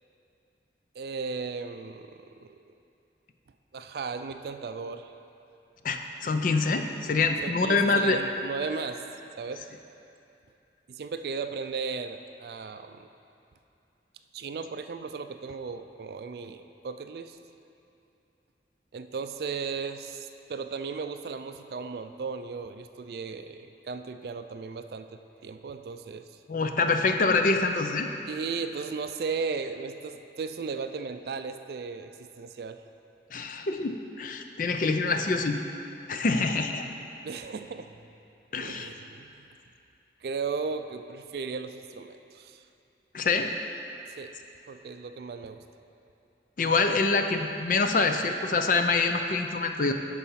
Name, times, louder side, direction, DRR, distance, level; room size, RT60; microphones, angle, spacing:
voice 1, 1.0-2.6 3.7-5.1 7.4-9.0 9.4-9.7 10.9-13.1 14.3-17.4 18.9-26.3 28.3-32.8 37.2-37.9 38.6-39.4 40.2-42.6 44.1-44.3 44.7-45.6, right 5 dB, 60° right, 9 dB, 0.3 m, -36 dB
voice 2, 5.8-8.2 26.5-28.1 33.3-35.6 36.1-36.8 38.5-38.9 43.1-43.5 46.6-49.9, left 3 dB, 50° left, 6 dB, 0.5 m, -25 dB
10.0 x 4.2 x 5.7 m, 2.7 s
head